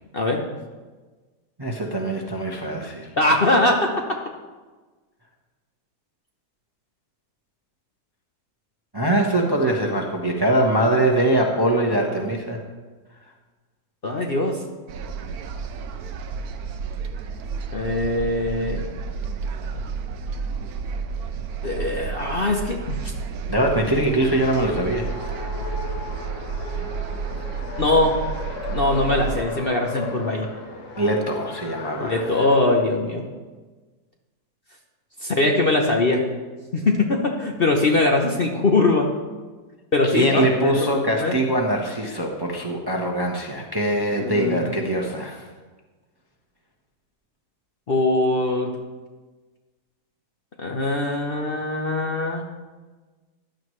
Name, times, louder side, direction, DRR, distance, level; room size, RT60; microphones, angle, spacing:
voice 1, 0.1-0.6 3.2-4.2 14.0-14.6 17.7-18.9 21.6-23.1 27.8-28.2 28.7-30.5 32.0-33.3 35.2-36.2 36.7-39.1 39.9-40.9 41.2-41.4 44.2-44.7 47.9-48.7 50.6-52.5, left 2 dB, 40° left, 1 dB, 0.9 m, -21 dB
voice 2, 1.6-3.1 8.9-12.6 23.5-25.3 26.6-26.8 31.0-32.2 40.1-45.4, right 1 dB, 20° right, 1 dB, 0.9 m, -22 dB
sound 1, 14.9-29.4, right 5 dB, 70° right, 1.2 m, -31 dB
Race car auto racing, 23.5-32.8, left 4 dB, 70° left, 1.8 m, -37 dB
15.0 x 11.0 x 3.2 m, 1.3 s
omnidirectional pair, 1.8 m